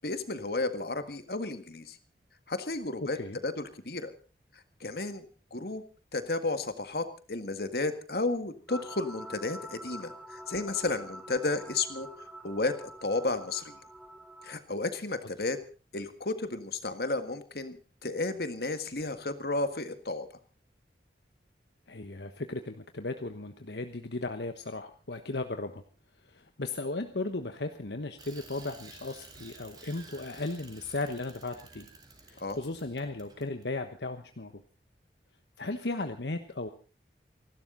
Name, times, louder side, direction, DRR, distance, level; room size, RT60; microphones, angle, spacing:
voice 1, 0.0-2.0 2.5-3.2 3.4-4.1 4.5-5.3 5.5-5.8 6.1-13.8 14.4-15.6 15.9-17.8 18.0-20.3 32.4-32.6, left 2 dB, 65° left, 9 dB, 1.8 m, -33 dB
voice 2, 3.0-3.4 21.9-25.8 26.2-31.9 32.3-34.6 35.6-36.7, left 2 dB, 80° left, 7 dB, 1.2 m, -36 dB
sound 1, 8.7-14.6, equal, 5° right, 1.0 m, -46 dB
Bicycle, 28.2-33.7, right 3 dB, 25° right, 3.6 m, -52 dB
29.0 x 12.0 x 3.9 m, 0.36 s
head